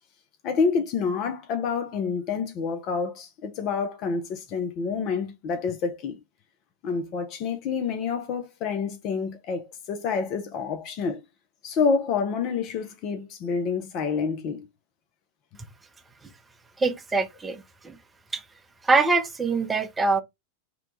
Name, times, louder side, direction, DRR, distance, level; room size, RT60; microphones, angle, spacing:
voice 1, 0.4-6.2 6.8-11.2 11.6-14.6, left 5 dB, 40° left, 0.5 m, -28 dB
voice 2, 16.8-18.0 18.3-18.4 18.8-20.2, right 3 dB, 15° right, 0.6 m, -24 dB
2.9 x 2.2 x 3.7 m
figure-of-eight pair, 90°, 0 cm